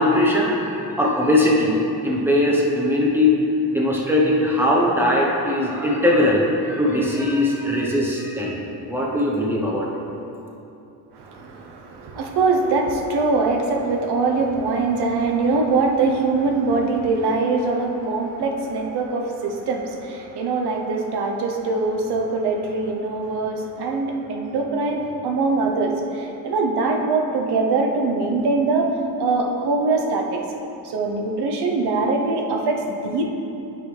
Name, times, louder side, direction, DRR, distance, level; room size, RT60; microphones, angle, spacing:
voice 1, 0.0-1.8 2.0-3.4 3.7-8.6 8.9-9.9, left 1 dB, 5° right, -3 dB, 1.0 m, -20 dB
voice 2, 11.1-30.4 30.8-33.2, right 3 dB, 80° right, 2 dB, 0.9 m, -23 dB
8.7 x 5.9 x 3.4 m, 2.9 s
cardioid pair, 135°, 39 cm